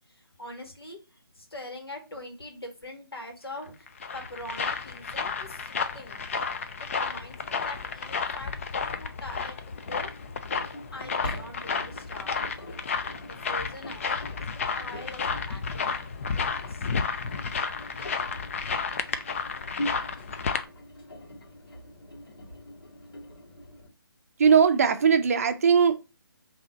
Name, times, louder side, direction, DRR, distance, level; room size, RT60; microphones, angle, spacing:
voice 1, 0.1-3.9 4.1-6.2 6.8-9.6 9.9-10.1 10.9-12.3 13.2-15.9 16.3-16.9, left 1 dB, 90° left, 1.6 m, -43 dB
sound 1, 3.6-20.6, left 5 dB, 35° left, 0.3 m, -32 dB
Engine, 9.7-23.9, left 1 dB, 65° left, 1.9 m, -42 dB
voice 2, 24.4-26.0, right 6 dB, 40° right, 0.5 m, -19 dB
3.9 x 2.7 x 3.9 m
figure-of-eight pair, 155°, 13 cm